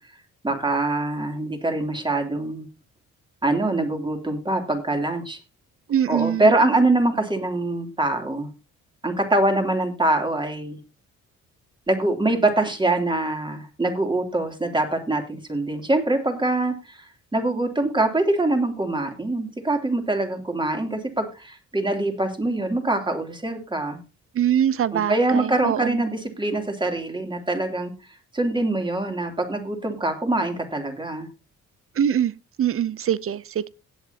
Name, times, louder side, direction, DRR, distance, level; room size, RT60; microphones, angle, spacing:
voice 1, 0.4-2.7 3.4-5.4 6.1-8.5 9.0-10.8 11.9-24.0 24.9-27.9 28.3-31.3, right 2 dB, 15° right, 3.1 m, -24 dB
voice 2, 5.9-6.5 24.3-26.0 32.0-32.3 32.6-33.7, right 9 dB, 45° right, 0.7 m, -23 dB
17.5 x 8.3 x 2.9 m
cardioid pair, 90°, 30 cm